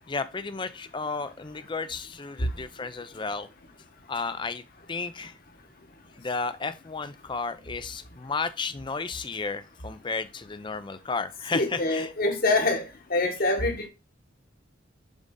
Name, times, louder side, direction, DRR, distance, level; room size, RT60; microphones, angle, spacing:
voice 1, 0.1-3.5 4.1-4.6 4.9-5.4 6.2-12.1, left 4 dB, 25° left, 0.5 m, -33 dB
voice 2, 11.5-12.8 13.1-13.9, left 2 dB, 50° left, 1.5 m, -25 dB
7.2 x 3.9 x 3.8 m
head